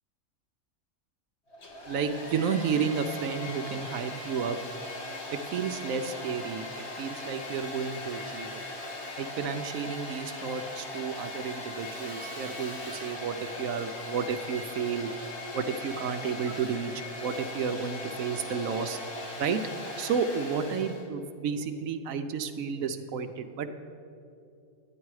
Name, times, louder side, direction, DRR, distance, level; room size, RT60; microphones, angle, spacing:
Domestic sounds home sounds, 1.5-21.1, left 2 dB, 55° left, 1.5 m, -39 dB
voice 1, 1.9-4.6 5.3-6.7 7.0-8.6 9.2-15.1 15.5-16.9 17.2-19.0 19.4-19.6 20.0-23.7, right 6 dB, 75° right, 8 dB, 1.0 m, -31 dB
11.5 x 9.6 x 4.7 m, 2.5 s
omnidirectional pair, 1.5 m